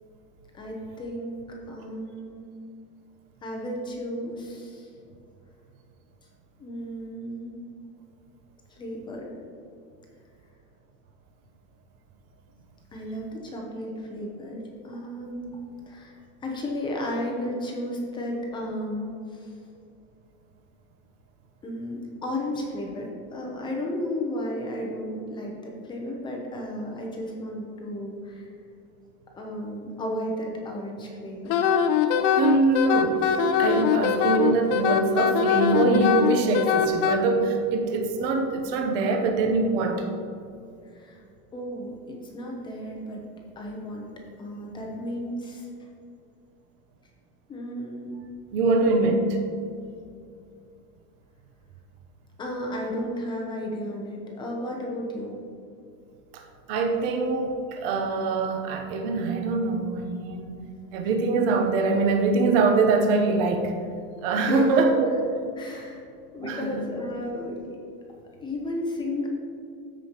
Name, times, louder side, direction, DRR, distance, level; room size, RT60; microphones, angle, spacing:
voice 1, 0.5-2.5 3.4-4.9 6.6-7.5 8.7-9.3 12.9-15.6 15.9-19.5 21.6-28.5 29.4-31.6 40.9-41.2 41.5-43.2 43.6-44.1 44.4-45.9 47.5-48.2 52.4-55.4 64.3-64.7 65.6-66.0 66.3-67.6 68.4-69.3, left 1 dB, 15° left, -1 dB, 0.6 m, -33 dB
Wind instrument woodwind instrument, 31.5-37.2, left 7 dB, 85° left, 0.8 m, -22 dB
voice 2, 32.4-33.2 33.6-40.0 48.5-49.2 56.3-56.4 56.7-60.6 60.9-63.7 64.2-65.1 66.4-66.8, right 3 dB, 50° right, 3 dB, 0.9 m, -23 dB
13.5 x 5.0 x 2.9 m, 2.4 s
supercardioid pair, 175°, 36 cm